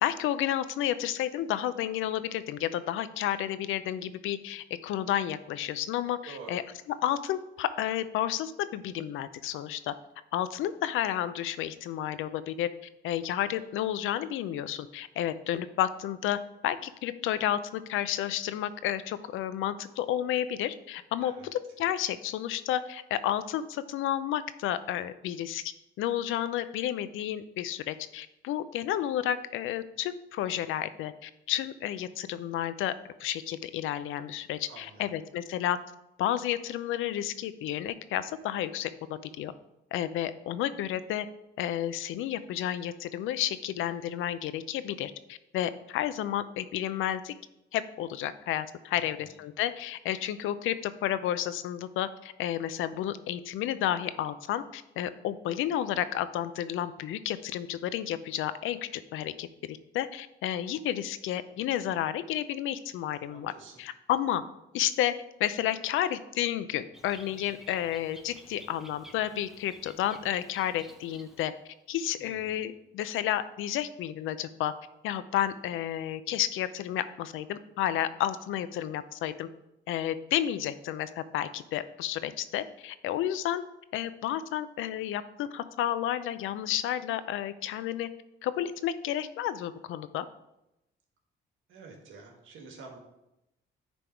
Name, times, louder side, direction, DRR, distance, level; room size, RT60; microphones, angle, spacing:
voice 1, 0.0-6.6 7.0-9.9 10.3-12.7 13.0-16.4 16.6-32.9 33.2-35.8 36.2-39.5 39.9-41.3 41.6-47.3 47.7-63.5 63.8-64.4 64.7-65.1 65.4-71.5 71.9-74.7 75.0-79.5 79.9-83.6 83.9-88.1 88.4-90.3, left 11 dB, 85° left, 14 dB, 0.5 m, -31 dB
voice 2, 6.2-6.6 21.2-21.5 34.7-35.2 48.9-49.4 63.2-63.8 72.2-72.7 91.7-93.0, right 4 dB, 80° right, 2 dB, 1.8 m, -49 dB
Bird, 66.9-71.7, equal, ahead, 0.9 m, -52 dB
10.0 x 3.5 x 4.5 m, 0.88 s
cardioid pair, 90°, 20 cm